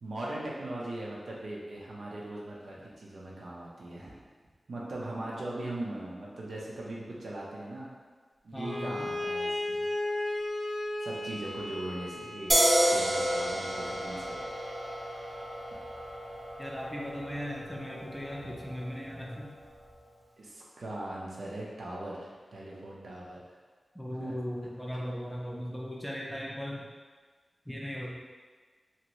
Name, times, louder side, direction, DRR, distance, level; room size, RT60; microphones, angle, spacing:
voice 1, 0.0-4.2 4.7-7.9 8.4-9.8 11.0-12.5 12.8-14.4 14.8-15.1 20.4-23.6 24.2-24.4, right 1 dB, 80° right, -4 dB, 0.6 m, -40 dB
voice 2, 8.5-9.1 16.6-19.5 23.9-26.9 27.7-28.1, equal, 10° left, -3 dB, 0.4 m, -38 dB
Bowed string instrument, 8.6-12.8, left 1 dB, 70° left, 0.5 m, -34 dB
sound 1, 12.5-19.8, right 1 dB, 35° right, 0.6 m, -31 dB
2.7 x 2.6 x 3.0 m, 1.5 s
wide cardioid pair, 100°, 0 cm